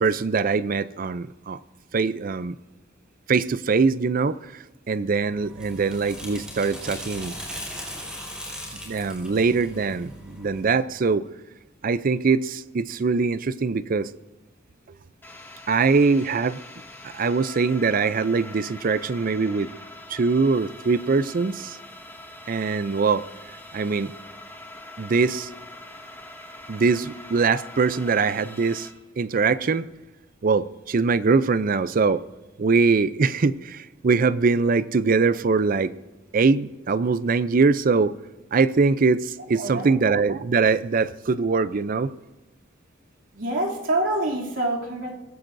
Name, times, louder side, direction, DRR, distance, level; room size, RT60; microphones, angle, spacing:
voice 1, 0.0-1.6 1.9-2.6 3.3-7.4 8.8-11.3 11.8-14.1 15.7-16.6 17.0-19.7 20.1-21.8 22.5-23.2 23.7-24.1 25.0-25.5 26.7-28.9 29.2-29.9 30.4-32.2 32.6-35.9 36.3-38.2 38.5-42.1, right 4 dB, 45° right, 0.5 m, -22 dB
sound 1, 5.2-10.6, equal, 5° right, 4.8 m, -38 dB
sound 2, 15.2-28.9, left 1 dB, 10° left, 1.4 m, -43 dB
voice 2, 39.5-39.9 43.3-45.1, right 1 dB, 80° right, 2.9 m, -26 dB
22.5 x 16.0 x 2.6 m
head